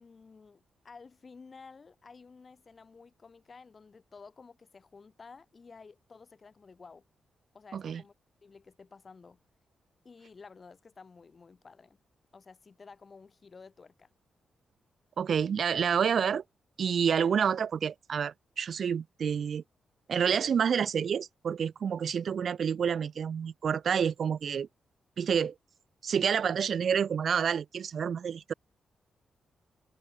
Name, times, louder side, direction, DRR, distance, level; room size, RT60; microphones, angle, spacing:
voice 1, 0.0-7.0 7.5-8.1 8.4-9.4 10.0-12.0 12.3-14.1, left 4 dB, 35° left, 2.6 m, -53 dB
voice 2, 15.2-16.4 16.8-19.6 20.1-24.7 25.2-25.5 26.0-28.5, right 7 dB, 55° right, 0.4 m, -28 dB
cardioid pair, 125°, 0 cm